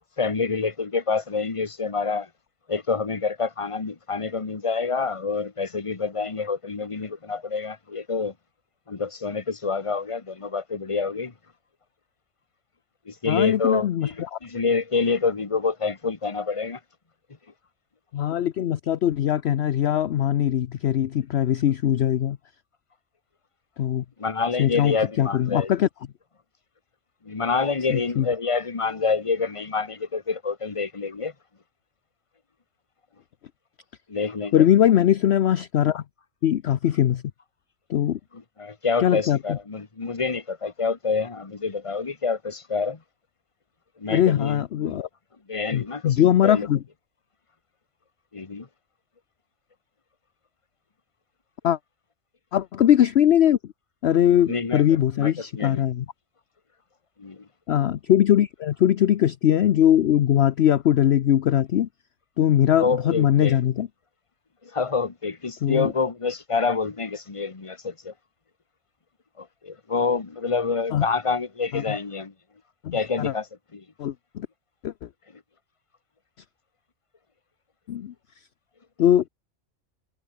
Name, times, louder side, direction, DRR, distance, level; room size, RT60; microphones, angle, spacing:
voice 1, 0.2-2.3 2.7-8.3 8.9-11.3 13.1-16.8 24.2-25.7 27.2-31.3 34.1-34.5 38.3-43.0 44.0-45.0 45.5-46.7 48.3-48.7 54.5-55.8 57.2-57.4 62.8-63.6 64.6-68.1 69.4-72.3 72.9-73.5 73.7-73.8, left 4 dB, 25° left, 1.3 m, -27 dB
voice 2, 13.3-14.4 18.1-22.4 23.8-24.0 24.6-25.9 27.9-28.3 34.5-36.0 36.4-37.2 37.9-38.2 39.0-39.4 44.1-45.1 45.7-46.8 51.6-51.8 52.5-53.6 54.0-56.1 57.7-61.9 62.4-63.9 65.6-65.9 70.9-71.1 71.7-71.9 72.8-73.3 74.0-74.5 74.8-75.1 77.9-78.1 79.0-79.3, left 10 dB, 60° left, 0.9 m, -21 dB
omnidirectional pair, 1.4 m